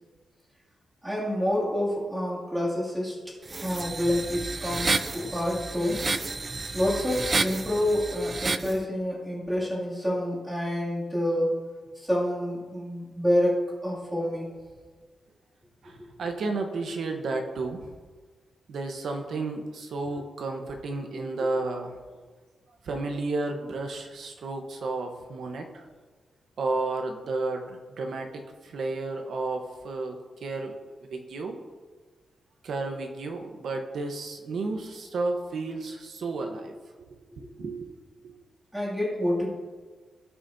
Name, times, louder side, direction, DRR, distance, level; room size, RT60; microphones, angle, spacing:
voice 1, 1.0-3.2 3.6-6.0 6.7-11.5 12.0-14.5 16.0-16.1 38.7-39.5, left 1 dB, 5° right, -7 dB, 2.6 m, -28 dB
sound 1, 3.5-8.8, right 3 dB, 25° right, 0.3 m, -31 dB
voice 2, 15.8-17.9 18.7-21.9 22.8-25.8 26.6-30.7 31.0-31.6 32.6-37.1 37.4-37.9 38.2-38.3, right 3 dB, 60° right, 4 dB, 1.1 m, -32 dB
17.0 x 6.4 x 2.8 m, 1.4 s
wide cardioid pair, 165°, 0 cm